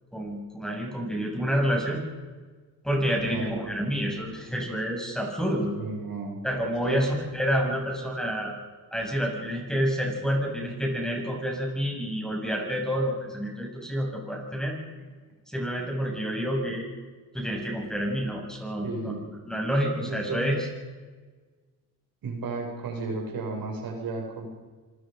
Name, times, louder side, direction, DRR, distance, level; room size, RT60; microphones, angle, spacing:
voice 1, 0.1-2.0 2.8-5.7 6.4-8.5 8.9-14.8 15.5-16.9 17.3-19.1 19.4-20.7, equal, ahead, 0 dB, 7.1 m, -28 dB
voice 2, 3.3-3.7 5.8-6.4 6.8-7.0 18.8-19.3 20.0-20.6 22.2-24.5, right 3 dB, 60° right, 1 dB, 6.6 m, -33 dB
26.5 x 20.5 x 5.3 m, 1.4 s
cardioid pair, 95°, 39 cm